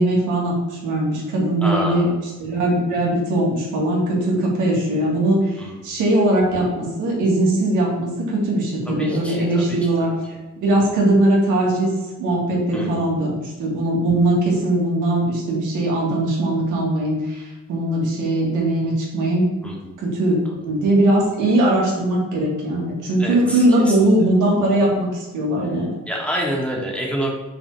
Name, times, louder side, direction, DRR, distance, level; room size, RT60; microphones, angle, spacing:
voice 1, 0.0-10.1 10.6-19.5 20.0-25.9, right 1 dB, 90° right, -3 dB, 2.3 m, -20 dB
voice 2, 1.6-2.1 5.6-5.7 8.9-9.8 12.7-13.1 19.6-19.7 23.2-24.1 26.1-27.3, equal, 5° left, -2 dB, 1.9 m, -27 dB
5.9 x 4.7 x 4.9 m, 1.1 s
cardioid pair, 90°, 30 cm